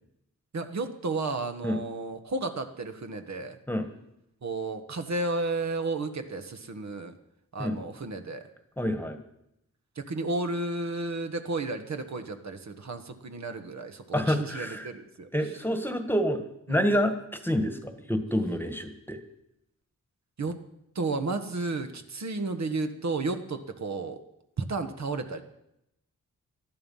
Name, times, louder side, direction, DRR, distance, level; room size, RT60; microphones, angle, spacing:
voice 1, 0.5-3.6 4.4-7.1 7.5-8.5 9.9-15.5 16.7-16.8 20.4-20.6 20.9-24.2 24.6-25.4, right 3 dB, 55° right, 7 dB, 1.4 m, -32 dB
voice 2, 8.8-9.2 14.1-14.9 15.3-16.4 16.7-19.2, equal, 5° left, 8 dB, 1.5 m, -28 dB
19.0 x 13.0 x 5.6 m, 0.81 s
wide cardioid pair, 125°, 33 cm